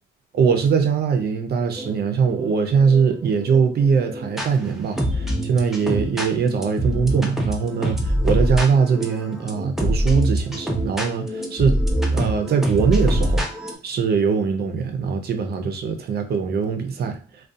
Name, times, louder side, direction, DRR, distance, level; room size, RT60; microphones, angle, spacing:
voice 1, 0.3-11.8 12.1-13.5 13.8-17.2, right 6 dB, 55° right, 0.5 m, -21 dB
sound 1, 1.8-4.5 5.0-13.7, equal, ahead, 0.5 m, -25 dB
2.4 x 2.3 x 2.6 m
cardioid pair, 90°, 20 cm